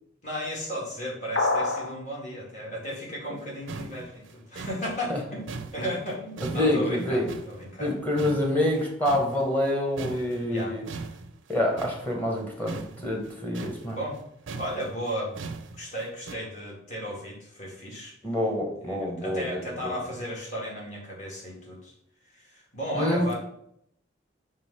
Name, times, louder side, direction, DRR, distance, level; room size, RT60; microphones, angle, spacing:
voice 1, 0.2-5.5 5.7-7.9 10.5-10.8 13.9-14.2 14.6-15.4 15.7-18.1 18.8-21.9 22.3-23.3, equal, 40° left, -4 dB, 2.3 m, -35 dB
sound 1, 1.4-1.9, left 2 dB, 70° left, 1.2 m, -25 dB
sound 2, 3.4-3.5 3.7-7.9 8.2-9.7 10.0-16.4, right 4 dB, 80° right, 0.5 m, -40 dB
voice 2, 6.4-7.3 7.8-10.9 11.5-14.0 18.2-20.0 22.9-23.3, left 1 dB, 10° left, 0 dB, 1.1 m, -27 dB
5.4 x 3.4 x 5.5 m, 0.72 s
head